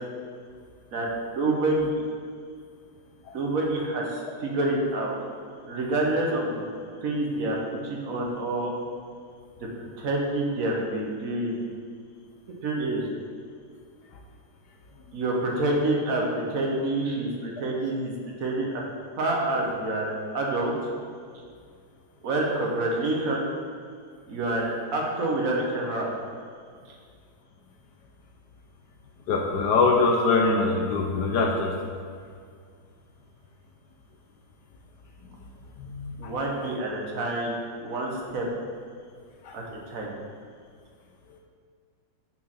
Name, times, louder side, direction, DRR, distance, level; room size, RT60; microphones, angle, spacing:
voice 1, 0.9-1.9 3.3-5.1 5.6-6.6 7.0-7.6 7.8-8.7 9.8-11.6 12.6-13.0 15.1-18.1 18.4-18.8 19.2-20.1 20.3-20.7 22.2-23.4 24.3-26.1 36.2-37.6 37.8-38.4 39.5-40.1, right 2 dB, 50° right, -1 dB, 1.2 m, -27 dB
voice 2, 29.3-31.7 35.8-36.3 39.4-39.6, left 3 dB, 70° left, 1 dB, 1.0 m, -23 dB
6.2 x 4.6 x 5.6 m, 2.1 s
omnidirectional pair, 2.3 m